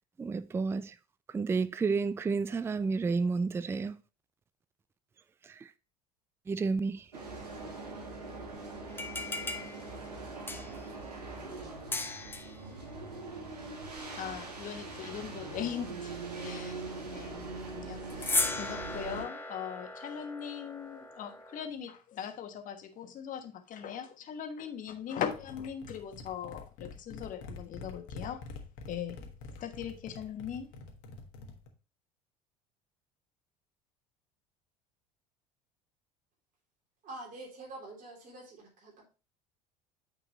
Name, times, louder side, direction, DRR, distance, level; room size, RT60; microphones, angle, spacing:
voice 1, 0.2-0.9 1.3-3.9 6.5-7.0, right 4 dB, 10° right, 0.4 m, -30 dB
sound 1, 7.1-19.2, right 3 dB, 80° right, 1.5 m, -42 dB
sound 2, 8.9-10.9 11.9-12.6 18.1-21.7, left 3 dB, 10° left, 0.9 m, -37 dB
voice 2, 14.2-16.1 16.4-28.4 28.9-30.7, left 8 dB, 40° left, 1.3 m, -40 dB
sound 3, 25.3-31.7, left 3 dB, 60° left, 1.4 m, -46 dB
voice 3, 37.0-39.0, right 2 dB, 40° right, 3.3 m, -46 dB
8.8 x 4.6 x 3.1 m
figure-of-eight pair, 65°, 20 cm